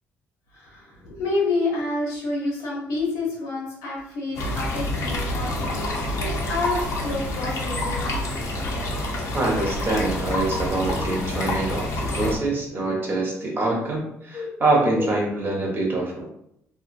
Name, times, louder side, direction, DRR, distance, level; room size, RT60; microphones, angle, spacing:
voice 1, 0.5-8.2 14.3-14.5 14.9-15.2 15.9-16.0, left 2 dB, 85° left, -3 dB, 1.0 m, -29 dB
sound 1, 4.3-12.4, left 1 dB, 65° left, 0.6 m, -27 dB
voice 2, 9.3-16.2, right 2 dB, 40° right, -1 dB, 0.9 m, -25 dB
2.6 x 2.4 x 2.5 m, 0.75 s
cardioid pair, 95°, 5 cm